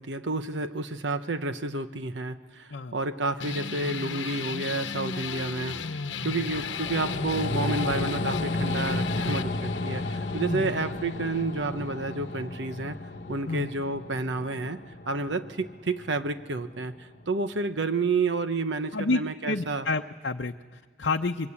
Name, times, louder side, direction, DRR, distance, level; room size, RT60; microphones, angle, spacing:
voice 1, 0.0-6.0 6.2-13.0 13.3-14.8 15.1-19.9, right 3 dB, 75° right, 9 dB, 1.0 m, -30 dB
sound 1, 3.4-12.4, left 5 dB, 90° left, 1.0 m, -36 dB
sound 2, 6.2-16.8 17.2-17.3, left 2 dB, 50° left, 1.1 m, -33 dB
voice 2, 18.9-21.5, left 3 dB, 70° left, 2 dB, 0.8 m, -30 dB
26.0 x 23.5 x 8.4 m, 1.4 s
head